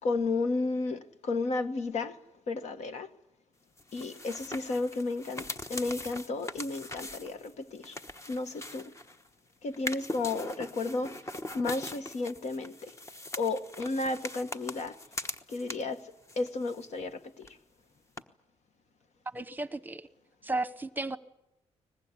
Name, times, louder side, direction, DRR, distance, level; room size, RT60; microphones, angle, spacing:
voice 1, 0.0-2.2 2.5-3.1 3.9-8.0 8.3-8.9 9.6-11.2 11.5-12.9 13.4-15.0 15.5-17.5, left 3 dB, 70° left, 1.6 m, -33 dB
sound 1, 3.8-9.3 9.7-16.0 16.3-17.2 17.4-17.5 18.2-18.3, left 2 dB, 25° left, 1.1 m, -41 dB
voice 2, 19.3-20.1 20.4-21.2, right 2 dB, 15° right, 1.0 m, -34 dB
23.0 x 20.5 x 9.8 m
wide cardioid pair, 130°, 12 cm